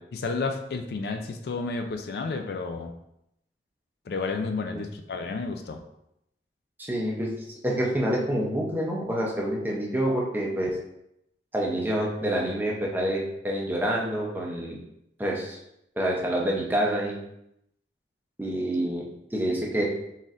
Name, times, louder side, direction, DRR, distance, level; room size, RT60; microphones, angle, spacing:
voice 1, 0.1-2.9 4.1-5.8, left 4 dB, 60° left, 5 dB, 0.4 m, -31 dB
voice 2, 6.8-7.3 7.6-10.8 11.5-14.8 15.2-15.6 16.0-17.1 18.4-19.8, right 1 dB, 10° right, -2 dB, 0.6 m, -27 dB
4.2 x 3.6 x 2.5 m, 0.80 s
head